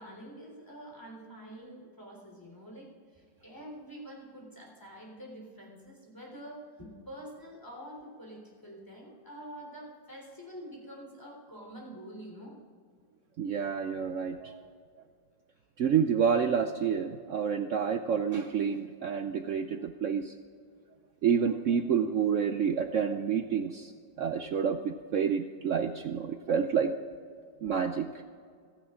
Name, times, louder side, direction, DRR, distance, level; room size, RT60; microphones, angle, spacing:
voice 1, 0.0-12.6, equal, 10° left, -2 dB, 3.5 m, -47 dB
voice 2, 13.4-14.6 15.8-20.3 21.2-23.9 24.2-26.9 27.6-28.1, right 7 dB, 80° right, 8 dB, 0.6 m, -29 dB
26.0 x 10.5 x 3.7 m, 2.1 s
omnidirectional pair, 2.1 m